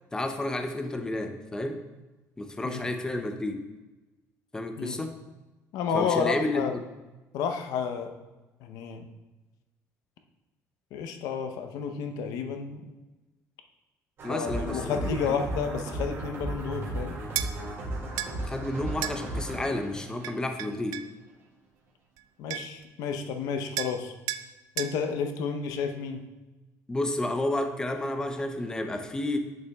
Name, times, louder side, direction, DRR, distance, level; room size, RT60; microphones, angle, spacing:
voice 1, 0.1-1.8 2.4-3.6 4.5-5.2 5.9-6.7 14.2-15.3 18.4-21.1 26.9-29.4, left 1 dB, 10° left, 6 dB, 0.6 m, -31 dB
voice 2, 5.7-6.7 7.3-8.1 8.6-9.1 10.9-12.9 14.3-17.2 22.4-24.1 24.8-26.2, left 6 dB, 80° left, 6 dB, 0.7 m, -31 dB
sound 1, 14.2-21.0, right 1 dB, 45° right, 2.1 m, -35 dB
sound 2, 17.4-17.5 18.2-18.3 19.0-19.2 20.2-21.1 22.2-22.3 22.5-22.8 23.8-24.0 24.3-24.5 24.8-25.0, right 13 dB, 80° right, 0.3 m, -33 dB
8.4 x 6.7 x 2.3 m, 1.1 s
cardioid pair, 145°, 6 cm